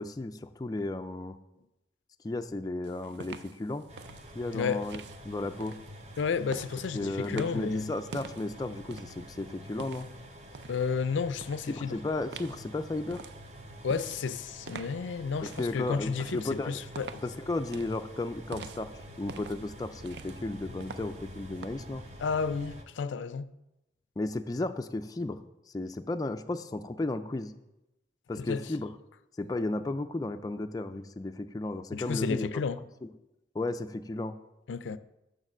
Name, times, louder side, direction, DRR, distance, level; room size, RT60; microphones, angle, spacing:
voice 1, 0.0-1.4 2.2-3.8 4.3-5.8 6.9-10.1 11.7-13.3 15.4-16.7 17.2-18.9 19.2-22.0 24.2-25.4 25.7-27.5 28.3-28.9 29.4-32.6 33.0-33.1 33.5-34.3, left 2 dB, 20° left, 0.3 m, -34 dB
sound 1, 2.8-11.0 11.4-11.7 12.3-21.7, right 5 dB, 65° right, 0.4 m, -48 dB
sound 2, 3.9-22.8, equal, 35° right, 0.9 m, -48 dB
voice 2, 4.5-4.9 6.2-7.9 10.7-12.0 13.8-17.1 22.2-23.5 28.4-28.7 31.9-32.8 34.7-35.0, left 5 dB, 90° left, 0.4 m, -32 dB
6.6 x 6.6 x 6.1 m
head